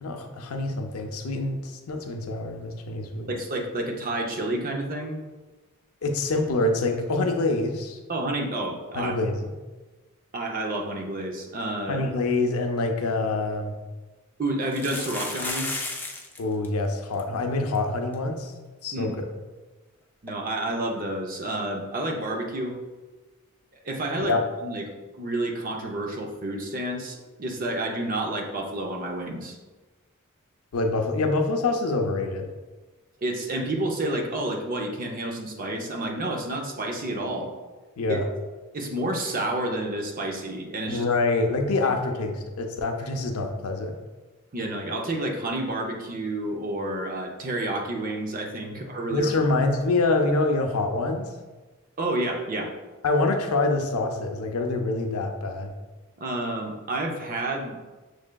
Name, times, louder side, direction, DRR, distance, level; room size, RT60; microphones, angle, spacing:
voice 1, 0.0-3.3 6.0-8.0 8.9-9.4 11.9-13.7 16.4-18.5 18.8-19.2 24.2-24.4 30.7-32.5 38.0-38.3 40.9-44.0 48.7-48.8 49.1-51.3 53.0-55.7, left 2 dB, 75° left, 4 dB, 0.5 m, -26 dB
voice 2, 3.3-5.2 8.1-9.1 10.3-12.0 14.4-15.7 18.9-19.2 20.2-22.7 23.8-24.4 24.6-24.9 25.1-29.6 33.2-37.5 38.1-38.2 38.7-41.0 44.5-49.3 52.0-52.7 56.2-57.8, right 1 dB, 40° right, 2 dB, 0.6 m, -29 dB
sound 1, 13.4-13.5 14.6-16.4 16.6-16.7 16.9-17.2 17.7-17.8 18.1-18.2 20.3-20.4, left 2 dB, 10° left, 0.3 m, -33 dB
6.2 x 3.2 x 2.2 m, 1.2 s
head